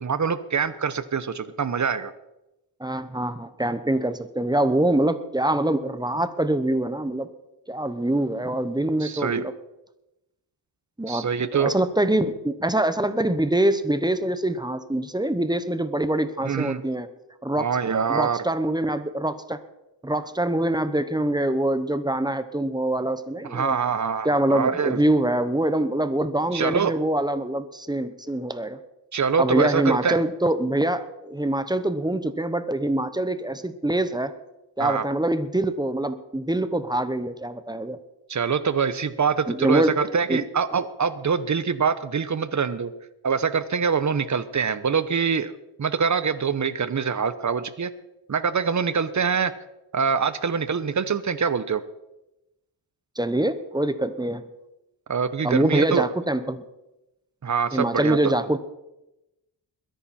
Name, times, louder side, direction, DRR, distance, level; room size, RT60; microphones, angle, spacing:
voice 1, 0.0-2.1 9.0-9.5 11.1-11.7 16.4-16.8 17.6-18.4 23.5-25.0 26.5-26.9 29.1-30.2 34.8-35.0 38.3-42.9 43.2-45.5 45.8-47.9 48.3-49.5 49.9-51.8 55.1-56.1 57.4-58.3, right 6 dB, 40° right, 14 dB, 1.0 m, -24 dB
voice 2, 2.8-7.3 7.7-9.5 11.0-11.3 11.6-17.1 17.4-17.8 18.1-19.6 20.0-23.8 24.2-28.8 29.4-34.3 34.8-38.0 39.5-39.9 40.3-40.4 53.2-54.5 55.4-56.6 57.7-58.6, right 1 dB, 10° right, 12 dB, 1.0 m, -24 dB
21.5 x 10.5 x 4.3 m, 0.92 s
cardioid pair, 90°, 43 cm